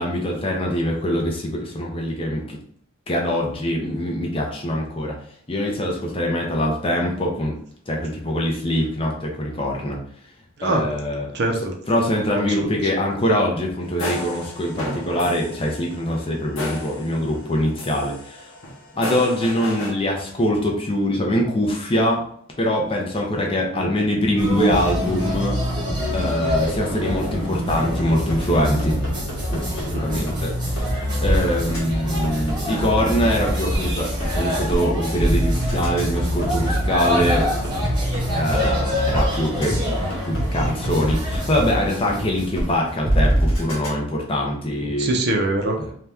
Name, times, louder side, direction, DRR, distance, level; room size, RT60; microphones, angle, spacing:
voice 1, 0.0-2.6 3.1-5.2 5.5-7.6 7.9-10.0 10.6-11.3 11.9-18.5 18.9-22.2 22.6-25.6 26.1-29.0 29.5-37.5 38.3-39.8 40.2-45.1 45.8-45.9, equal, 25° left, 0 dB, 0.5 m, -23 dB
voice 2, 11.3-11.7 12.3-12.5 12.8-12.9 23.7-23.9 29.9-30.2 44.8-45.8, right 2 dB, 50° right, 2 dB, 0.5 m, -24 dB
sound 1, 13.8-17.5 17.8-19.9, left 1 dB, 80° left, 0.8 m, -33 dB
sound 2, 24.4-42.9, equal, 20° right, 0.9 m, -25 dB
sound 3, 28.3-29.8 30.3-30.4 30.8-30.9 31.2-31.4 31.7-31.8 32.2-33.8 34.2-34.3 34.7-34.8 35.2-37.7 38.1-38.2 38.6-38.7 39.1-39.2 39.6-39.7 40.1-41.6 42.1-42.2 42.6-42.7 43.0-43.9, right 1 dB, 60° left, 1.2 m, -23 dB
2.7 x 2.2 x 3.4 m, 0.63 s
head